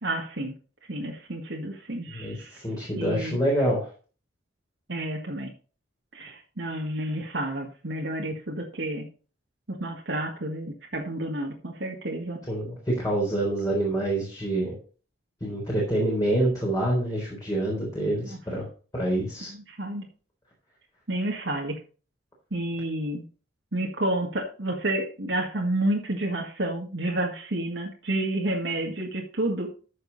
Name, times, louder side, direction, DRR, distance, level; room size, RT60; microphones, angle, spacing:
voice 1, 0.0-0.5 0.9-2.5 3.0-3.4 4.9-5.5 6.1-9.0 9.8-12.4 19.7-20.1 21.1-21.8 22.5-23.2 23.7-29.7, right 1 dB, 70° right, -1 dB, 1.9 m, -30 dB
voice 2, 2.1-3.9 12.5-14.8 15.4-18.7 18.9-19.5, right 1 dB, 20° left, -3 dB, 3.9 m, -26 dB
14.0 x 6.6 x 4.1 m, 0.38 s
head